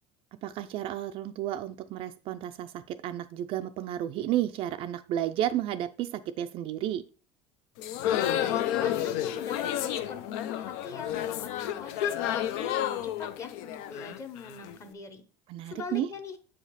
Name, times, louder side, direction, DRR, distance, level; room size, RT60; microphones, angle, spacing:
voice 1, 0.4-7.0 15.5-16.1, right 12 dB, 45° right, 10 dB, 0.4 m, -32 dB
sound 1, 7.8-14.8, left 11 dB, 80° left, 0.6 m, -31 dB
voice 2, 8.3-15.2 15.7-16.3, left 4 dB, 20° left, 9 dB, 0.8 m, -42 dB
7.4 x 5.1 x 4.1 m, 0.38 s
cardioid pair, 170°, 13 cm